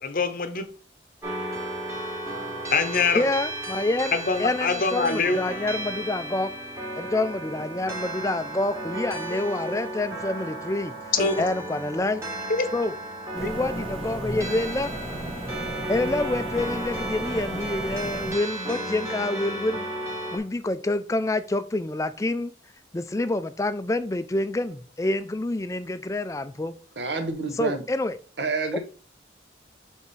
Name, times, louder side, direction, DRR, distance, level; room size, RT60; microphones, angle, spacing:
voice 1, 0.0-0.7 2.7-3.3 4.1-5.4 11.1-11.5 12.6-12.7 13.4-13.5, left 4 dB, 50° left, 0.7 m, -24 dB
sound 1, 1.2-20.4, right 1 dB, 15° right, 1.5 m, -34 dB
voice 2, 3.2-4.1 4.4-6.5 7.0-10.9 11.4-12.5 12.7-12.9 13.3-14.9 15.9-19.9 20.3-22.5 22.9-26.7 27.5-28.2 28.7-28.8, left 2 dB, 15° left, 0.3 m, -27 dB
sound 2, 13.3-18.4, right 1 dB, 30° right, 1.1 m, -35 dB
voice 3, 27.0-27.8 28.4-28.8, right 3 dB, 75° right, 1.1 m, -28 dB
6.7 x 3.5 x 4.1 m
head